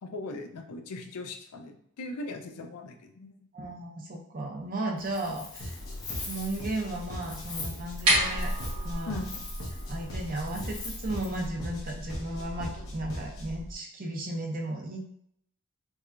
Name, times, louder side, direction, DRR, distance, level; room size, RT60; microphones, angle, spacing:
voice 1, 0.0-3.4 9.1-9.5, left 2 dB, 90° left, 5 dB, 0.5 m, -39 dB
voice 2, 3.5-5.7 6.3-8.5 8.8-9.2 9.9-15.0, right 1 dB, 40° right, 0 dB, 0.6 m, -35 dB
Wind, 5.0-11.4, left 3 dB, 20° left, 0.4 m, -43 dB
sound 1, 5.6-13.6, left 1 dB, 65° left, 1.0 m, -40 dB
sound 2, 7.8-13.7, right 1 dB, 85° right, 1.2 m, -33 dB
4.7 x 2.2 x 2.5 m, 0.68 s
head